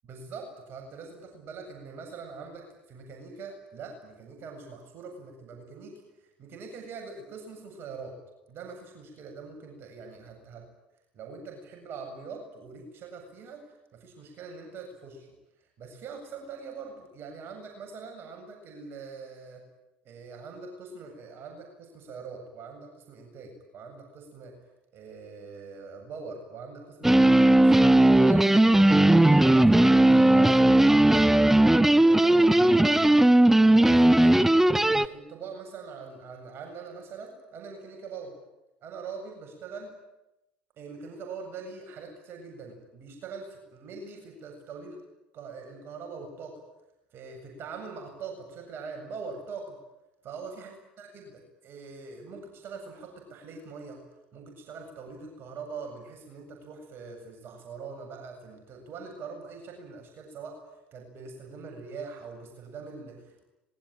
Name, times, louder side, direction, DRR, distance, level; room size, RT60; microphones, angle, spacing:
voice 1, 0.0-5.9 6.4-8.1 8.5-10.6 11.1-13.6 13.9-15.3 15.8-19.6 20.0-24.5 24.9-27.8 28.2-31.5 31.9-33.3 33.7-34.5 34.9-38.3 38.8-39.9 40.8-45.0 45.3-46.6 47.1-49.8 50.2-54.0 54.3-60.6 60.9-63.4, right 4 dB, 45° right, 2 dB, 7.8 m, -43 dB
sound 1, 27.0-35.1, right 1 dB, 5° right, 1.1 m, -18 dB
25.5 x 21.5 x 9.0 m, 0.91 s
figure-of-eight pair, 65°, 5 cm